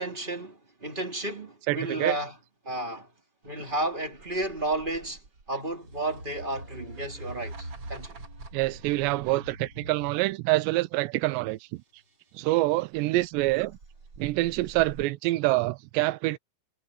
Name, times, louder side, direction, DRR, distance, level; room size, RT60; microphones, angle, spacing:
voice 1, 0.0-2.4 2.6-3.1 3.4-8.2, right 2 dB, 15° right, 1.9 m, -32 dB
voice 2, 1.7-2.2 8.5-11.8 12.3-13.8 14.2-16.4, right 19 dB, 90° right, 2.9 m, -26 dB
sound 1, 4.0-10.3 12.9-15.0, right 2 dB, 35° right, 2.7 m, -44 dB
sound 2, 6.3-11.3 12.1-12.2 12.5-12.6, left 1 dB, 25° left, 5.6 m, -57 dB
omnidirectional pair, 5.0 m